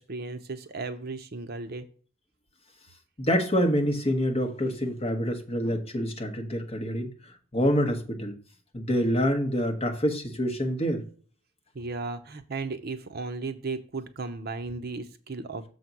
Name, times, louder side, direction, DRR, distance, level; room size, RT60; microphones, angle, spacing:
voice 1, 0.0-1.8 11.7-15.7, right 3 dB, 45° right, 0.6 m, -35 dB
voice 2, 3.2-7.1 7.5-8.4 8.7-11.0, equal, 30° left, 1.1 m, -26 dB
6.9 x 4.0 x 5.9 m
head